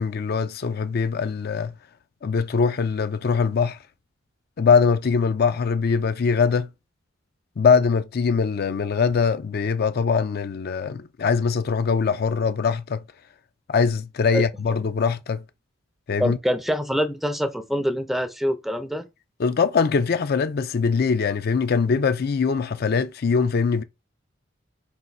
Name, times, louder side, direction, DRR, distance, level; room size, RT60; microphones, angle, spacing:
voice 1, 0.0-1.7 2.2-3.8 4.6-6.7 7.6-13.0 13.7-15.4 16.1-16.4 19.4-23.8, left 5 dB, 50° left, 0.4 m, -22 dB
voice 2, 16.2-19.1, equal, ahead, 0.5 m, -25 dB
4.3 x 2.5 x 3.9 m
head